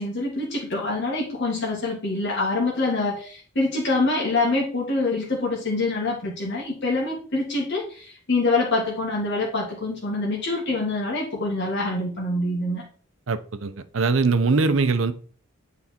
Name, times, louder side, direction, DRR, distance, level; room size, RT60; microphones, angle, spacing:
voice 1, 0.0-12.8, left 2 dB, 60° left, -4 dB, 1.9 m, -25 dB
voice 2, 13.3-15.1, right 4 dB, 70° right, 12 dB, 0.7 m, -22 dB
8.3 x 4.0 x 4.3 m, 0.43 s
head